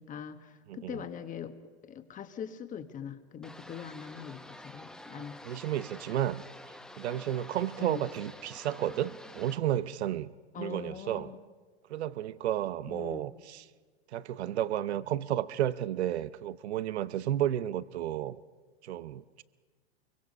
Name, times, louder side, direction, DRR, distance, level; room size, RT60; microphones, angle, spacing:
voice 1, 0.0-1.5 1.8-5.4 7.8-8.0 10.5-11.4 12.9-13.3, left 8 dB, 25° left, 9 dB, 1.4 m, -42 dB
voice 2, 0.7-1.1 5.4-6.4 7.0-11.3 11.9-13.7 14.1-18.4 18.8-19.4, right 12 dB, 80° right, 15 dB, 0.8 m, -32 dB
sound 1, 3.4-9.6, left 1 dB, ahead, 1.1 m, -48 dB
24.0 x 23.5 x 5.4 m, 1.4 s
hypercardioid pair, 125°, 32 cm